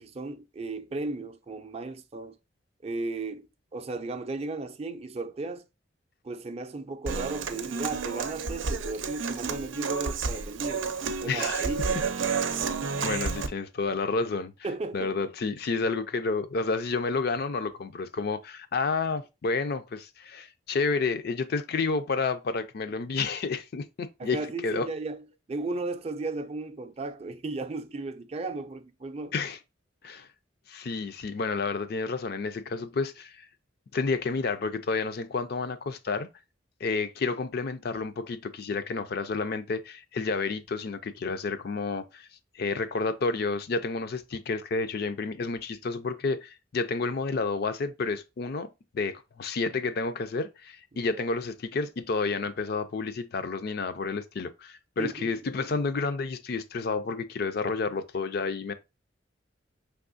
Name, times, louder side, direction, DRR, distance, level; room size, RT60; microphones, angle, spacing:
voice 1, 0.0-2.4 2.8-5.7 6.2-10.9 11.2-12.0 14.6-15.1 24.2-29.4 50.9-51.2 55.0-55.3, right 3 dB, 30° right, 0.4 m, -35 dB
Human voice / Acoustic guitar, 7.0-13.5, right 5 dB, 85° right, 0.5 m, -30 dB
voice 2, 11.3-11.7 13.0-14.5 14.9-24.9 29.3-29.6 30.0-30.3 30.7-33.5 33.9-36.3 36.8-42.3 42.5-48.7 48.9-58.7, left 4 dB, 55° left, 0.4 m, -30 dB
5.4 x 3.4 x 2.5 m
head